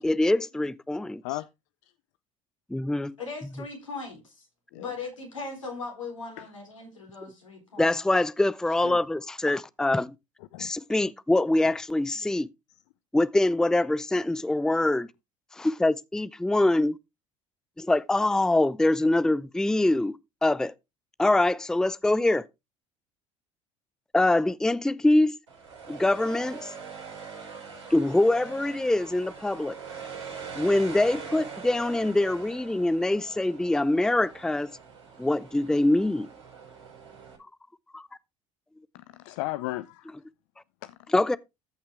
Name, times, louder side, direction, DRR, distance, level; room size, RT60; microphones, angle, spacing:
voice 1, 0.0-1.2 2.7-3.1 7.8-10.1 10.6-12.5 13.1-15.1 15.5-17.0 17.8-20.2 20.4-20.7 21.2-22.4 24.1-25.3 25.9-26.7 27.9-29.8 30.6-34.7 35.2-36.3 37.9-38.1 41.1-41.4, left 2 dB, 5° left, 0.5 m, -24 dB
voice 2, 3.2-4.5 4.7-8.0, left 4 dB, 90° left, 3.7 m, -39 dB
sound 1, 25.5-37.4, right 5 dB, 85° right, 5.2 m, -43 dB
voice 3, 38.9-40.1 40.8-41.0, left 18 dB, 70° left, 0.6 m, -35 dB
14.0 x 5.7 x 3.5 m
hypercardioid pair, 65°, 16 cm